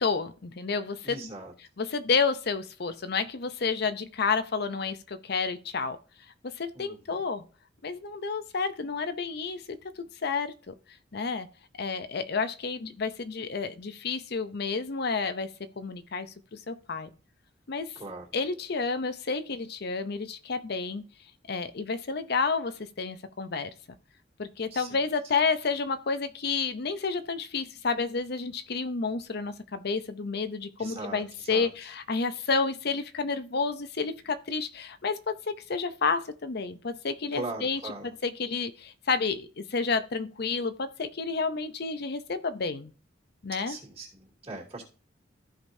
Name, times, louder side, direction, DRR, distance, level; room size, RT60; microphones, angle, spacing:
voice 1, 0.0-1.3 1.6-6.0 6.4-7.4 7.8-10.7 11.1-11.5 11.8-15.5 15.8-17.1 17.7-18.0 18.3-21.0 21.5-23.7 24.4-37.9 38.2-42.9 43.4-43.8, left 4 dB, 55° left, 11 dB, 0.7 m, -30 dB
voice 2, 1.0-1.5 6.7-7.0 17.9-18.3 24.7-25.0 30.8-31.7 37.3-38.1 43.7-44.8, right 2 dB, 30° right, -2 dB, 3.0 m, -40 dB
14.5 x 5.1 x 2.7 m, 0.37 s
head